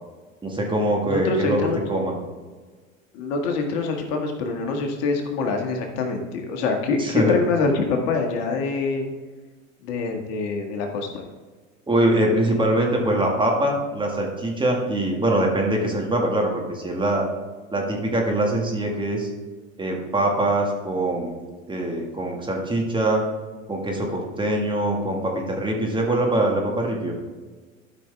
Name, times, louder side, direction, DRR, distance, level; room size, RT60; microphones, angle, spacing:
voice 1, 0.4-2.1 7.0-7.3 11.9-17.3 17.7-19.3 19.8-21.4 21.7-23.2 23.7-27.1, right 1 dB, 10° right, 0 dB, 1.8 m, -23 dB
voice 2, 1.0-1.8 3.1-9.1 9.8-11.2, left 4 dB, 55° left, 3 dB, 1.8 m, -25 dB
12.5 x 6.0 x 3.5 m, 1.4 s
hypercardioid pair, 95°, 40 cm